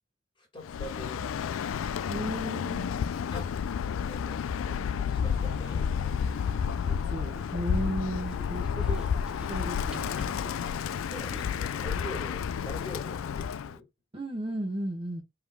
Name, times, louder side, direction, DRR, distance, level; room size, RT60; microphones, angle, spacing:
voice 1, 0.4-1.8 3.3-3.4 4.1-6.1 11.1-13.8, left 1 dB, 25° left, 1.6 m, -44 dB
Bird, 0.6-13.7, left 7 dB, 85° left, 0.3 m, -31 dB
voice 2, 2.1-2.9 6.8-9.0 9.5-10.4 14.1-15.2, right 1 dB, 25° right, 1.1 m, -35 dB
sound 1, 5.2-11.8, equal, 5° right, 0.8 m, -49 dB
5.0 x 3.6 x 2.3 m
head